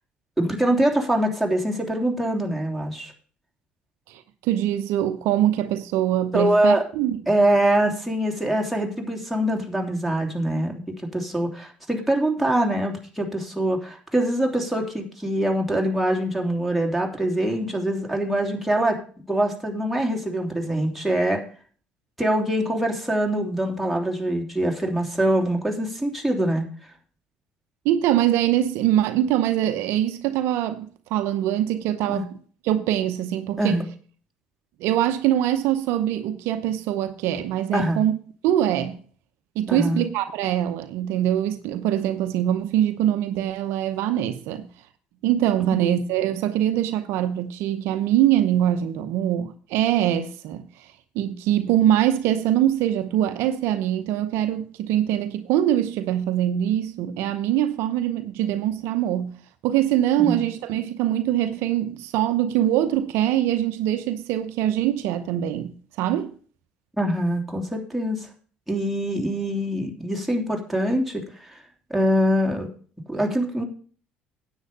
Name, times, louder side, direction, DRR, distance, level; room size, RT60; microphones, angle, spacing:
voice 1, 0.4-3.1 6.3-6.8 7.3-19.0 19.3-21.4 22.2-26.7 32.1-32.2 33.6-33.9 37.7-38.0 39.7-40.0 60.2-60.4 67.0-68.3 68.7-71.5 71.9-72.7 73.1-73.6, right 1 dB, ahead, 3.1 m, -24 dB
voice 2, 4.1-7.2 27.8-32.3 32.6-33.8 34.8-38.1 38.4-39.0 39.6-44.7 45.2-50.9 51.1-59.3 59.6-66.3, right 11 dB, 70° right, 0.8 m, -23 dB
9.8 x 8.2 x 5.2 m
hypercardioid pair, 60°, 4 cm